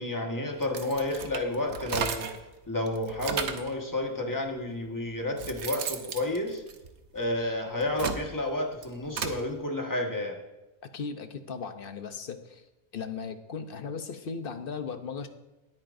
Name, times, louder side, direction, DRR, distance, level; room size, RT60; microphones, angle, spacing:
voice 1, 0.0-2.3 2.7-6.6 7.1-10.4, left 1 dB, 15° left, 1 dB, 1.5 m, -31 dB
sound 1, 0.6-2.5 2.9-3.7 4.6-4.7 5.1-7.3 7.7-9.4, right 6 dB, 60° right, 1.1 m, -35 dB
voice 2, 10.8-12.6 12.9-15.3, left 5 dB, 50° left, 8 dB, 0.9 m, -37 dB
19.5 x 8.8 x 2.6 m, 1.0 s
omnidirectional pair, 1.4 m